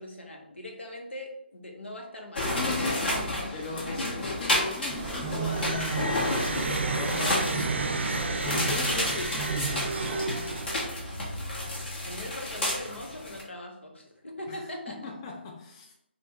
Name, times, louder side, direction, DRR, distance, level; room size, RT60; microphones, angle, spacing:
voice 1, 0.0-2.4 7.0-7.6 10.1-10.3 12.0-15.1, left 1 dB, 85° left, 1.0 m, -41 dB
sound 1, 2.4-13.4, left 1 dB, 60° left, 1.4 m, -31 dB
voice 2, 2.5-3.1 3.5-6.4 6.9-7.5 8.4-10.1 14.5-15.9, left 3 dB, 30° left, 0.5 m, -38 dB
sound 2, 4.9-10.2, right 5 dB, 25° right, 0.4 m, -34 dB
sound 3, 5.5-11.1, right 2 dB, 80° right, 0.6 m, -32 dB
5.2 x 2.3 x 3.0 m
figure-of-eight pair, 145°, 6 cm